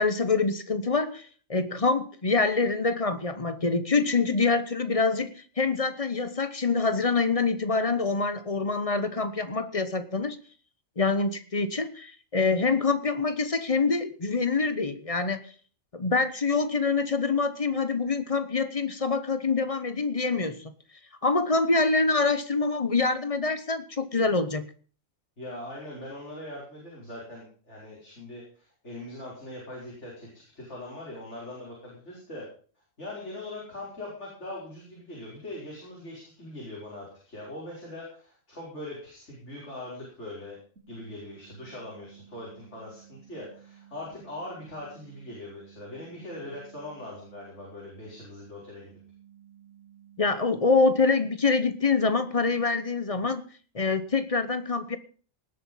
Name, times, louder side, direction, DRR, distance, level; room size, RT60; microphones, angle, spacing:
voice 1, 0.0-10.4 11.0-15.4 15.9-20.7 21.2-24.7 50.2-53.5 53.7-55.0, left 4 dB, 30° left, 12 dB, 0.9 m, -25 dB
voice 2, 25.4-32.5 33.0-40.6 40.9-48.9, left 1 dB, 60° left, -5 dB, 5.6 m, -41 dB
sound 1, 40.8-50.8, right 10 dB, 75° right, 4.9 m, -54 dB
18.5 x 8.3 x 5.6 m, 0.42 s
omnidirectional pair, 1.4 m